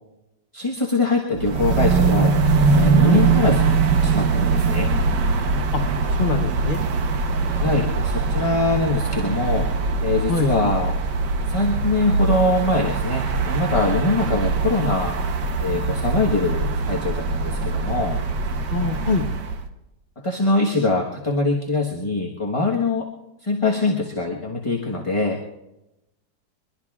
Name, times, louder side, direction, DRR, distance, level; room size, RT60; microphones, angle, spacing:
voice 1, 0.5-2.4 2.7-3.6 4.0-4.9 7.5-9.7 10.0-11.0 11.5-15.2 15.6-18.2 20.2-23.1 23.4-25.4, left 2 dB, 20° left, -1 dB, 1.1 m, -23 dB
sound 1, 1.3-19.6, right 4 dB, 80° right, 1.6 m, -22 dB
voice 2, 6.2-6.8 10.3-10.5 18.7-19.2, left 4 dB, 40° left, 3 dB, 0.8 m, -23 dB
23.0 x 22.5 x 2.4 m, 0.94 s
omnidirectional pair, 1.8 m